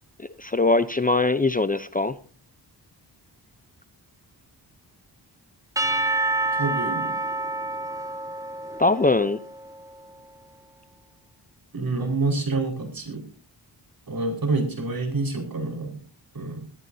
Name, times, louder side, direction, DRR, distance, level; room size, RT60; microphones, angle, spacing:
voice 1, 0.2-2.1 8.8-9.4, left 3 dB, 20° left, 12 dB, 0.7 m, -22 dB
Percussion / Church bell, 5.8-9.9, right 2 dB, 10° right, 1.8 m, -28 dB
voice 2, 6.5-7.2 11.7-13.2 14.1-16.0 16.3-16.6, right 3 dB, 55° right, 3 dB, 5.1 m, -27 dB
22.5 x 13.5 x 2.8 m, 0.38 s
wide cardioid pair, 85°, 42 cm